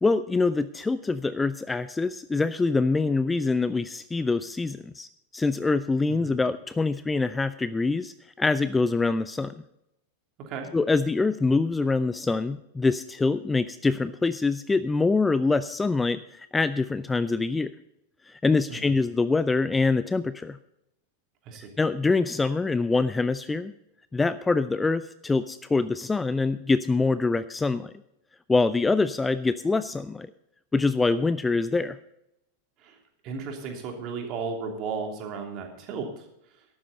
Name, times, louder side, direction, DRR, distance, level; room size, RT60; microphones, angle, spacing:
voice 1, 0.0-9.5 10.7-17.7 18.3-20.6 21.8-23.7 24.1-27.9 28.5-30.3 30.7-32.0, left 3 dB, 10° left, 15 dB, 0.4 m, -25 dB
voice 2, 6.1-6.4 10.4-10.7 18.7-18.9 21.4-21.7 32.8-33.0 33.2-36.6, right 5 dB, 40° right, 2 dB, 2.9 m, -35 dB
13.5 x 12.0 x 4.1 m, 0.82 s
figure-of-eight pair, 90°, 0 cm